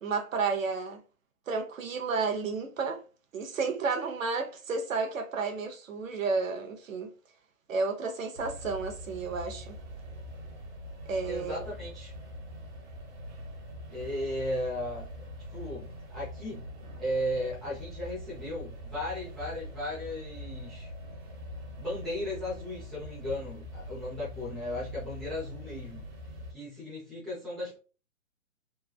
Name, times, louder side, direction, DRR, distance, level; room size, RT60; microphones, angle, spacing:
voice 1, 0.0-1.0 1.5-3.0 3.3-7.1 7.7-9.7 11.1-11.7, right 4 dB, 70° right, 0.8 m, -31 dB
sound 1, 8.3-26.5, equal, 45° right, 1.1 m, -43 dB
voice 2, 11.3-12.1 13.9-15.1 15.5-16.7 17.0-20.9 21.8-26.0 26.5-27.8, left 1 dB, ahead, 0.5 m, -36 dB
3.2 x 2.2 x 2.2 m
hypercardioid pair, 140°, 40 cm